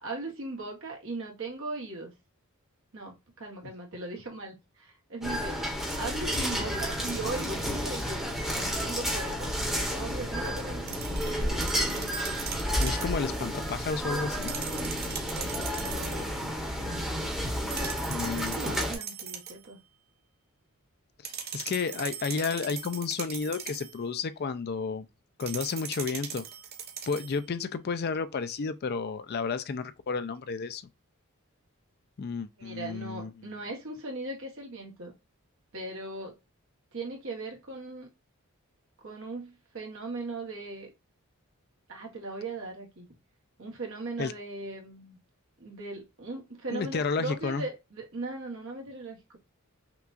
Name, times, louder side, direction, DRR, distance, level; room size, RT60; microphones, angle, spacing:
voice 1, 0.0-2.1 2.9-5.6 5.9-11.6 15.8-16.3 17.6-19.8 32.6-35.1 35.7-36.4 36.9-38.1 39.0-40.9 41.9-43.1 43.6-45.2 45.6-49.2, right 2 dB, 60° right, 1.2 m, -39 dB
sound 1, 5.2-18.9, equal, ahead, 1.1 m, -31 dB
sound 2, 10.9-13.2 14.3-16.3 17.7-19.7 21.2-24.0 25.4-27.4, right 8 dB, 45° right, 0.7 m, -39 dB
voice 2, 12.8-14.5 18.1-18.6 21.2-25.1 25.4-26.4 27.1-30.8 32.2-33.3 44.2-44.3 46.7-47.6, left 5 dB, 45° left, 0.4 m, -32 dB
5.8 x 2.3 x 2.4 m
head